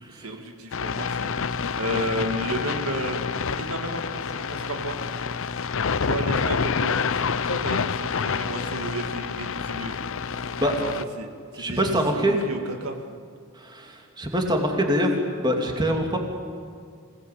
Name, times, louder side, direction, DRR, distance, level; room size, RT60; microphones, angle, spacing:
voice 1, 0.1-3.2 3.6-5.0 6.0-9.9 10.8-10.9 11.2-11.3 11.5-13.0, right 1 dB, 75° right, 4 dB, 2.2 m, -32 dB
sound 1, 0.7-11.0, left 5 dB, 65° left, 0.7 m, -28 dB
voice 2, 11.5-12.4 13.6-15.1 15.4-16.2, equal, 20° right, 2 dB, 2.9 m, -24 dB
27.5 x 19.0 x 8.6 m, 2.2 s
head